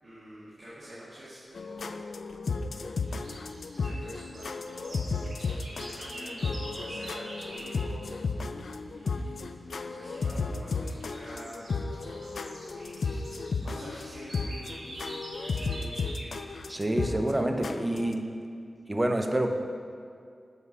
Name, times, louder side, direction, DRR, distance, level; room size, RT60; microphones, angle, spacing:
voice 1, 0.0-2.0 2.7-3.1 3.7-8.3 8.8-12.3 12.6-15.0 15.4-16.0, equal, 70° right, -11 dB, 2.0 m, -48 dB
sound 1, 1.6-18.1, left 4 dB, 75° left, 0.3 m, -34 dB
sound 2, 3.0-7.8 10.0-10.4 10.8-16.4, right 1 dB, 85° right, 1.6 m, -45 dB
voice 2, 16.7-18.2 18.9-19.5, right 1 dB, 20° right, 5 dB, 0.6 m, -27 dB
8.1 x 4.7 x 5.5 m, 2.3 s
wide cardioid pair, 85°, 0 cm